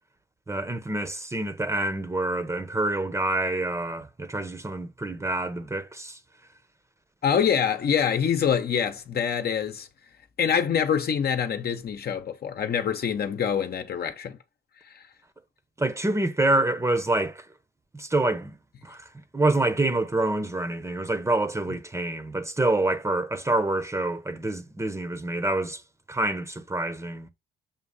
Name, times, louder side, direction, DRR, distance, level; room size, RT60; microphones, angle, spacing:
voice 1, 0.5-6.2 15.8-17.5 17.9-18.6 18.8-25.8 26.1-27.3, right 2 dB, 15° right, 0.9 m, -27 dB
voice 2, 7.2-9.9 10.4-14.4, left 7 dB, 50° left, 0.9 m, -25 dB
7.3 x 2.6 x 5.4 m
cardioid pair, 90°, 20 cm